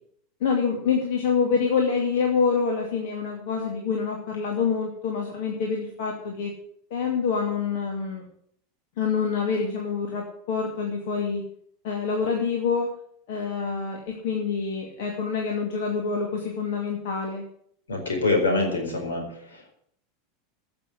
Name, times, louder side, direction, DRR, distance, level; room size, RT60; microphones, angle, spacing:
voice 1, 0.4-6.5 6.9-8.3 9.0-11.4 11.8-12.9 13.3-17.4, left 5 dB, 60° left, 0 dB, 2.5 m, -26 dB
voice 2, 17.9-19.7, left 3 dB, 75° left, 3 dB, 4.3 m, -25 dB
14.5 x 6.9 x 8.2 m, 0.66 s
figure-of-eight pair, 85°, 0 cm